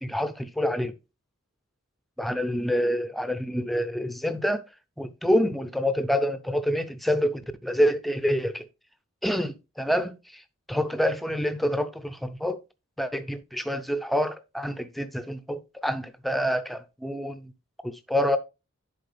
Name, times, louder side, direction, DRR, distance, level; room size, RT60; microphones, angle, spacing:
voice 1, 0.0-0.9 2.2-4.6 5.0-8.7 9.2-10.4 10.7-12.6 13.0-17.5 17.8-18.4, equal, ahead, 0.4 m, -27 dB
10.5 x 4.5 x 3.3 m
head